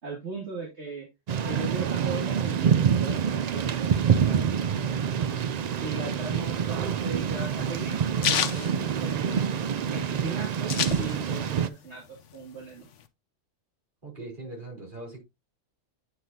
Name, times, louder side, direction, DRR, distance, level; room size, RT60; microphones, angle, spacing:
voice 1, 0.0-1.1 1.4-4.8 5.0-5.3 5.8-9.4 9.9-12.9, right 4 dB, 60° right, 2.6 m, -38 dB
Thunder / Rain, 1.3-11.7, right 7 dB, 90° right, 0.3 m, -26 dB
sound 1, 6.5-9.6 10.0-10.1 10.2-11.5 11.9-13.0, left 9 dB, 70° left, 1.0 m, -30 dB
voice 2, 14.0-15.2, right 2 dB, 40° right, 4.0 m, -40 dB
9.2 x 5.5 x 2.8 m
omnidirectional pair, 1.3 m